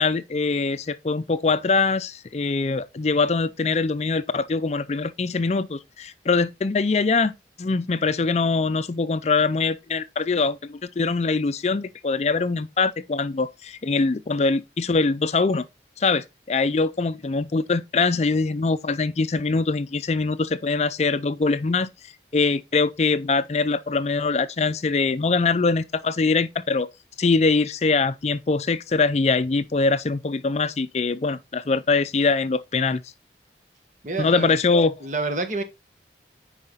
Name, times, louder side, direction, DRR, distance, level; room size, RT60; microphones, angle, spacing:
voice 1, 0.0-15.6 16.0-26.9 27.2-33.1 34.2-34.9, left 4 dB, 40° left, 0.4 m, -23 dB
voice 2, 34.0-34.6 35.0-35.6, right 3 dB, 45° right, 1.5 m, -28 dB
9.6 x 4.9 x 3.9 m
head